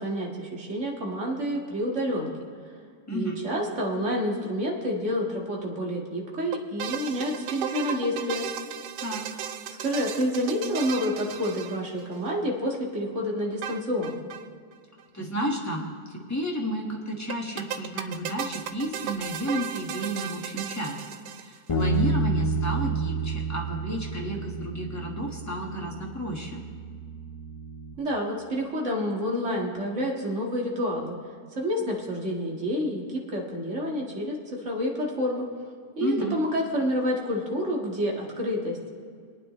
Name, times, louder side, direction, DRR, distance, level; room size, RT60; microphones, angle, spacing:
voice 1, 0.0-2.3 3.1-8.4 9.8-14.1 28.0-31.2 31.5-35.5 36.0-38.9, equal, 45° right, -2 dB, 2.1 m, -28 dB
voice 2, 3.1-3.4 9.0-9.2 15.1-21.0 21.4-26.6 36.0-36.3, right 1 dB, 10° left, -2 dB, 1.5 m, -32 dB
sound 1, 6.5-12.3 13.6-14.5 14.7-14.8 15.0-15.1 17.3-21.8, right 9 dB, 85° right, 1.2 m, -35 dB
Bass guitar, 21.7-27.9, right 3 dB, 35° left, 0.5 m, -30 dB
25.5 x 9.4 x 3.1 m, 2.1 s
omnidirectional pair, 1.7 m